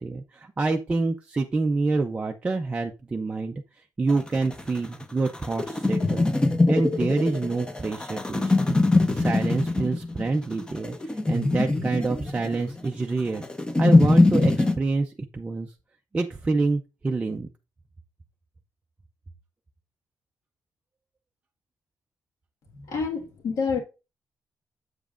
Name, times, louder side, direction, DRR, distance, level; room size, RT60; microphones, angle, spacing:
voice 1, 0.0-3.6 4.0-6.3 6.7-8.5 8.9-11.0 11.3-13.4 13.8-15.7 16.1-17.5, right 3 dB, 20° right, 0.4 m, -27 dB
sound 1, 4.1-14.7, left 2 dB, 15° left, 0.7 m, -23 dB
voice 2, 22.7-23.8, left 5 dB, 65° left, 1.6 m, -28 dB
8.1 x 7.0 x 2.5 m
wide cardioid pair, 170°, 6 cm